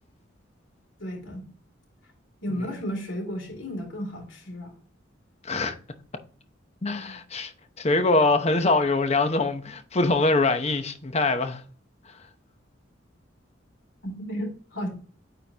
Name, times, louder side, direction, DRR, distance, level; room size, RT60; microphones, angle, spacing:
voice 1, 1.0-1.5 2.4-4.7 6.8-6.9 14.0-14.9, equal, 75° left, 3.1 m, -33 dB
voice 2, 5.4-5.8 6.8-7.5 7.8-11.6, left 3 dB, 35° left, 0.8 m, -23 dB
9.0 x 3.9 x 2.9 m
head